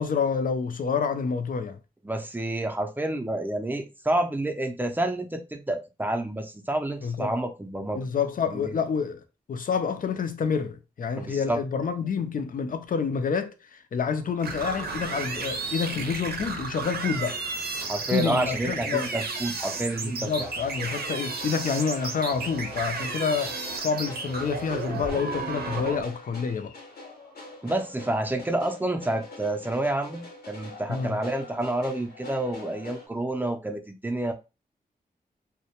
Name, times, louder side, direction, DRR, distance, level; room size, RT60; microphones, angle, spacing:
voice 1, 0.0-1.8 7.0-7.3 7.9-9.2 9.5-17.3 18.1-19.1 20.0-26.7 30.9-31.2, left 6 dB, 60° left, 0.4 m, -28 dB
voice 2, 2.0-8.1 8.5-8.8 11.2-11.6 17.8-20.5 27.6-34.3, right 1 dB, 10° right, 0.4 m, -29 dB
sound 1, 14.4-26.0, right 4 dB, 85° right, 0.6 m, -33 dB
sound 2, 20.4-33.1, left 2 dB, 90° left, 0.9 m, -45 dB
2.2 x 2.1 x 2.8 m
wide cardioid pair, 80°, 16 cm